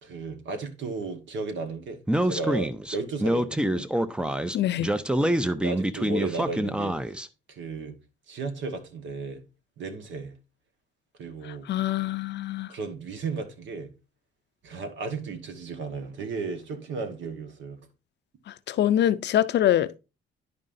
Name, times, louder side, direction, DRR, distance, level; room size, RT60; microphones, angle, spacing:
voice 1, 0.0-3.9 5.6-7.0 7.5-7.9 8.3-9.4 9.8-10.4 11.2-11.7 12.7-13.9 14.6-17.9, right 4 dB, 70° right, 1.3 m, -34 dB
Speech, 2.1-7.3, right 1 dB, 5° right, 0.4 m, -26 dB
voice 2, 4.5-4.9 11.7-12.7 18.7-20.0, left 11 dB, 60° left, 0.5 m, -24 dB
10.0 x 5.3 x 2.6 m
cardioid pair, 90°, 20 cm